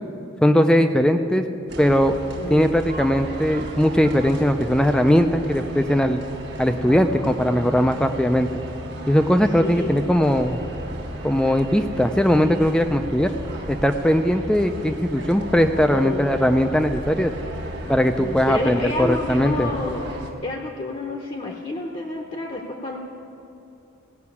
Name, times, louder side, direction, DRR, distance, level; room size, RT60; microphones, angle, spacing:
voice 1, 0.4-1.4 1.8-2.1 2.5-6.2 6.6-8.5 9.1-10.6 11.2-13.3 13.7-17.3 17.9-19.7, equal, 5° left, 7 dB, 0.4 m, -19 dB
sound 1, 1.7-20.3, right 1 dB, 55° right, 1.4 m, -35 dB
voice 2, 2.4-2.8 9.4-10.0 15.9-16.3 18.2-20.1 20.4-23.0, left 2 dB, 30° left, 1 dB, 0.8 m, -29 dB
17.0 x 5.8 x 8.4 m, 2.7 s
head